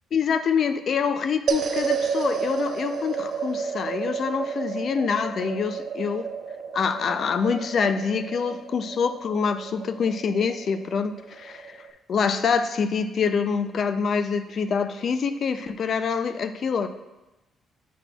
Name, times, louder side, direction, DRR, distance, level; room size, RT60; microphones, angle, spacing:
voice 1, 0.1-6.3 6.7-11.8 12.1-16.9, left 6 dB, 55° left, 10 dB, 0.4 m, -25 dB
sound 1, 1.5-11.9, right 6 dB, 60° right, 0.5 m, -31 dB
8.3 x 5.8 x 2.3 m, 1.0 s
cardioid pair, 90°, 0 cm